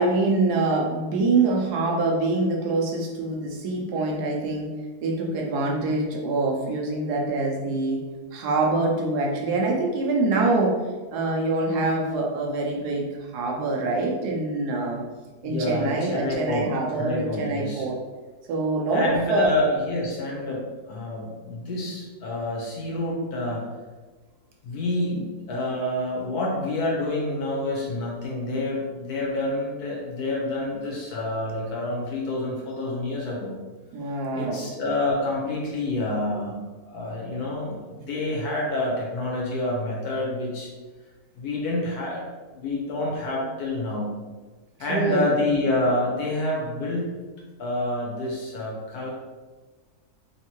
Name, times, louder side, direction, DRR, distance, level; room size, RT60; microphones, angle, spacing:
voice 1, 0.0-4.7 5.0-8.0 8.3-10.8 11.1-15.0 15.4-18.0 18.5-19.5 33.9-34.7 44.9-45.3, right 3 dB, 85° right, 0 dB, 1.2 m, -25 dB
voice 2, 15.4-16.7 17.0-17.8 18.9-23.6 24.6-33.5 34.3-40.7 41.3-42.2 42.5-44.1 44.8-47.1 47.6-49.1, left 1 dB, 75° left, -3 dB, 1.5 m, -28 dB
3.6 x 3.2 x 2.9 m, 1.3 s
omnidirectional pair, 1.7 m